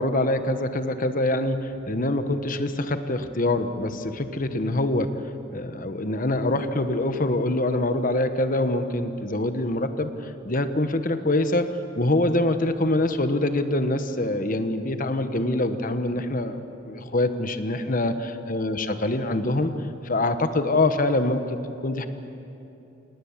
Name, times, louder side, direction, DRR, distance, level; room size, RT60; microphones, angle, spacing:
voice 1, 0.0-5.1 5.5-11.7 12.0-18.1 18.5-19.7 20.0-21.6 21.8-22.1, left 2 dB, 40° left, 9 dB, 1.2 m, -24 dB
27.5 x 19.0 x 7.4 m, 2.9 s
head